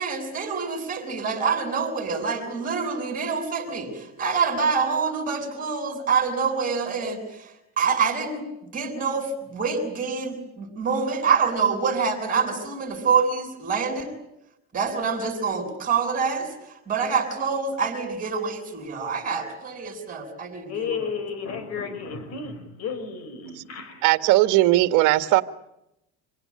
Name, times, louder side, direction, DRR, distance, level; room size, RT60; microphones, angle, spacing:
voice 1, 0.0-14.1 14.7-21.1, right 5 dB, 25° right, 5 dB, 7.7 m, -26 dB
voice 2, 20.7-24.0, left 5 dB, 50° left, 9 dB, 4.9 m, -32 dB
voice 3, 24.0-25.4, right 17 dB, 65° right, 10 dB, 1.8 m, -18 dB
26.5 x 18.0 x 9.8 m, 0.84 s
cardioid pair, 140°, 33 cm